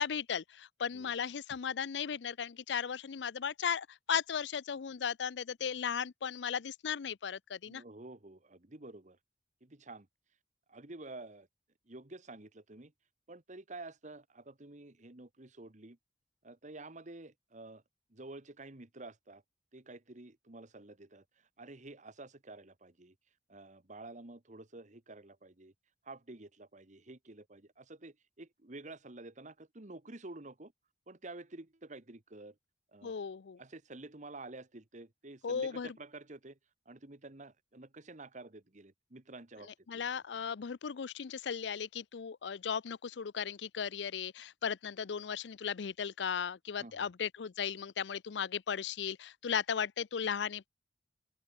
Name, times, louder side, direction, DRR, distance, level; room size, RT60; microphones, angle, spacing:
voice 1, 0.0-7.8 33.0-33.6 35.4-35.9 39.9-50.7, left 7 dB, 80° left, 0.5 m, -36 dB
voice 2, 7.7-9.2 9.6-10.1 10.7-11.5 11.9-12.9 13.3-16.0 16.4-17.8 18.1-19.4 19.7-23.2 23.5-25.7 26.0-30.7 31.1-32.6 32.9-33.2 33.6-36.6 36.9-40.1 46.7-47.1, right 2 dB, 45° right, 1.6 m, -50 dB
open air
head